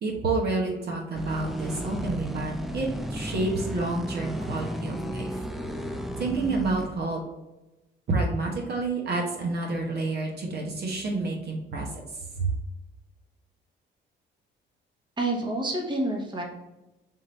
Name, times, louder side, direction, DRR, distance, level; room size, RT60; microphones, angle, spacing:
voice 1, 0.0-5.4 6.2-7.2 8.1-11.9 12.4-12.5, right 3 dB, 55° right, 0 dB, 1.0 m, -29 dB
sound 1, 1.1-6.9, equal, ahead, 0.4 m, -33 dB
voice 2, 15.2-16.4, right 2 dB, 25° right, 0 dB, 1.0 m, -28 dB
3.8 x 2.5 x 4.3 m, 1.0 s
cardioid pair, 90°, 20 cm